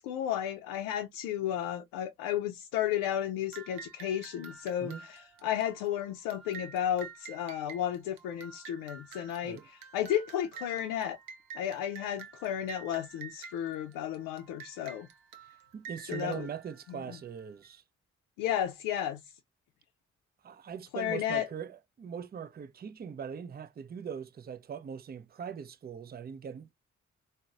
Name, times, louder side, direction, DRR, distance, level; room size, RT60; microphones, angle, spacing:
voice 1, 0.0-11.2 11.5-15.1 16.1-16.5 16.9-17.2 18.4-19.3 20.9-21.5, left 10 dB, 80° left, 0.5 m, -33 dB
sound 1, 3.5-17.7, right 6 dB, 85° right, 0.7 m, -49 dB
voice 2, 15.7-17.8 20.4-26.7, right 7 dB, 30° right, 0.5 m, -41 dB
3.9 x 2.1 x 2.3 m
hypercardioid pair, 40°, 33 cm